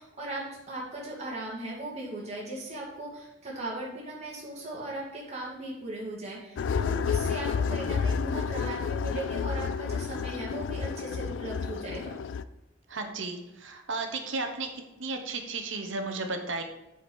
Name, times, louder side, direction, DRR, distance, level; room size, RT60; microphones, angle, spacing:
voice 1, 0.0-12.2, right 1 dB, 35° right, -5 dB, 2.4 m, -38 dB
sound 1, 6.6-12.4, left 6 dB, 70° left, 0.3 m, -30 dB
voice 2, 12.9-14.7 15.0-16.6, right 3 dB, 70° right, 5 dB, 1.0 m, -34 dB
6.8 x 5.1 x 5.4 m, 0.94 s
head